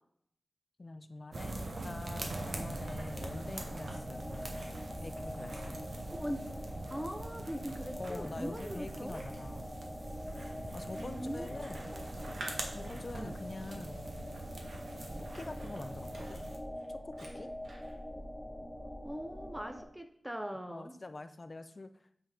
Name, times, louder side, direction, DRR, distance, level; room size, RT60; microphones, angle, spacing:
voice 1, 0.8-4.7 5.0-5.8 8.0-9.7 10.7-11.9 12.7-14.1 15.2-16.4 16.9-17.5 20.7-22.2, left 2 dB, 45° left, 10 dB, 0.5 m, -45 dB
sound 1, 1.3-16.6, right 2 dB, 65° right, 0.9 m, -43 dB
sound 2, 2.3-19.8, equal, 5° left, 1.3 m, -45 dB
Scissors, 2.7-4.0 4.3-17.9, right 1 dB, 85° right, 1.3 m, -53 dB
voice 2, 6.1-6.4 6.9-9.3 10.9-11.6 11.9-12.3 12.7-12.9 13.1-13.3 19.0-20.9, equal, 10° right, 6 dB, 0.7 m, -41 dB
8.0 x 4.0 x 3.6 m, 0.68 s
wide cardioid pair, 70°, 0 cm